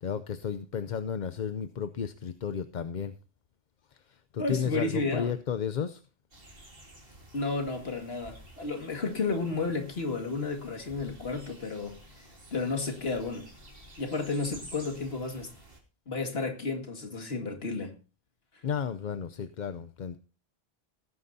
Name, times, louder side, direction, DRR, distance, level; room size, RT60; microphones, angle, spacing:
voice 1, 0.0-3.1 3.9-6.0 18.6-20.2, left 7 dB, 50° left, 0.7 m, -33 dB
voice 2, 4.4-5.3 7.3-11.9 12.5-13.5 14.0-15.5 16.1-17.9, left 3 dB, 70° left, 2.3 m, -32 dB
sound 1, 6.3-15.8, right 1 dB, 60° right, 3.1 m, -51 dB
18.0 x 9.6 x 2.7 m
omnidirectional pair, 1.1 m